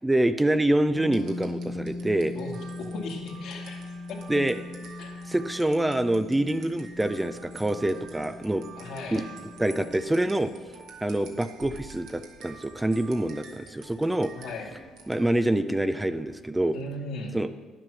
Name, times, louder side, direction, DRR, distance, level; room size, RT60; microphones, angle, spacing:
voice 1, 0.0-2.3 4.3-4.6 5.3-8.6 9.1-9.2 9.6-10.5 11.0-14.3 15.1-16.8 17.3-17.5, right 1 dB, 10° right, 11 dB, 0.4 m, -26 dB
sound 1, 0.9-10.7, left 2 dB, 55° right, 2.0 m, -40 dB
sound 2, 1.1-15.5, right 5 dB, 75° right, 1.6 m, -49 dB
voice 2, 2.3-4.4 5.0-5.3 8.8-9.3 14.3-14.7 16.7-17.4, left 2 dB, 70° left, 1 dB, 1.9 m, -38 dB
10.0 x 7.5 x 6.3 m, 1.4 s
cardioid pair, 115°, 0 cm